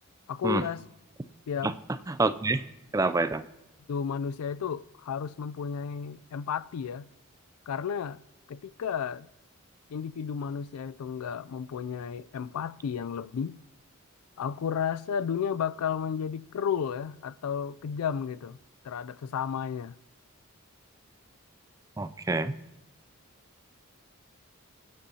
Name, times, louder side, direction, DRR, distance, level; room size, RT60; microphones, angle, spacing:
voice 1, 0.3-0.8 1.5-1.7 3.9-7.1 7.7-8.2 8.5-9.3 9.9-13.6 14.4-18.6 18.8-19.9, left 7 dB, 90° left, 0.4 m, -32 dB
voice 2, 2.1-2.6 2.9-3.4 22.0-22.5, right 3 dB, 15° right, 0.3 m, -27 dB
25.0 x 9.6 x 2.8 m
head